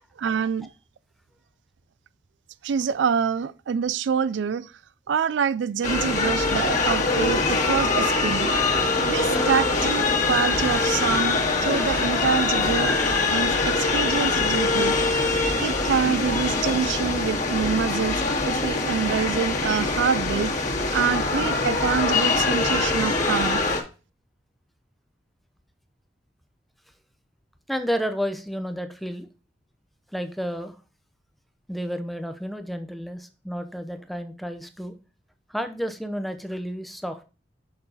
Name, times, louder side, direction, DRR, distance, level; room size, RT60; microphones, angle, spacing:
voice 1, 0.2-0.7 2.6-4.7 5.1-8.5 9.0-13.0 13.3-15.0 15.6-20.6 20.9-23.6, right 7 dB, 80° right, 0.4 m, -26 dB
sound 1, 5.8-23.8, left 3 dB, 45° left, 1.8 m, -23 dB
voice 2, 27.7-29.3 30.1-30.8 31.7-35.0 35.5-37.2, equal, ahead, 0.7 m, -31 dB
6.7 x 5.7 x 4.0 m
head